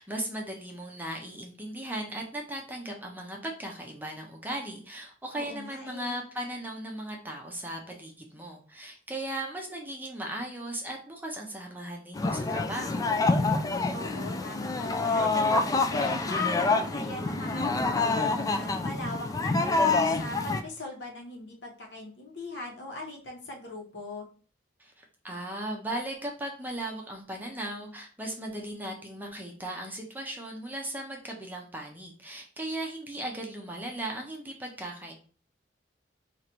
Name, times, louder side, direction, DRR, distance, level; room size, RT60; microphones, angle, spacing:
voice 1, 0.0-13.2 24.8-35.1, right 1 dB, 10° right, 0 dB, 0.7 m, -37 dB
voice 2, 5.3-6.2 13.9-15.4 15.9-24.3, left 2 dB, 70° left, 0 dB, 1.1 m, -40 dB
sound 1, 12.1-20.6, left 3 dB, 20° left, 0.3 m, -27 dB
3.1 x 2.5 x 4.4 m, 0.40 s
head